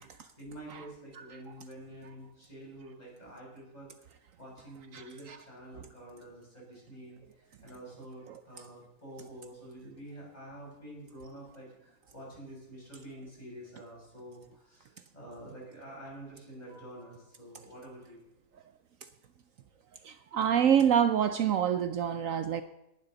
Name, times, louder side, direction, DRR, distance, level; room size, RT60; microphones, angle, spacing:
voice 1, 0.0-3.9 4.4-18.3, right 1 dB, 30° left, -4 dB, 6.9 m, -48 dB
voice 2, 20.0-22.6, right 8 dB, 70° right, 10 dB, 1.0 m, -26 dB
18.5 x 11.5 x 3.9 m, 0.93 s
omnidirectional pair, 1.5 m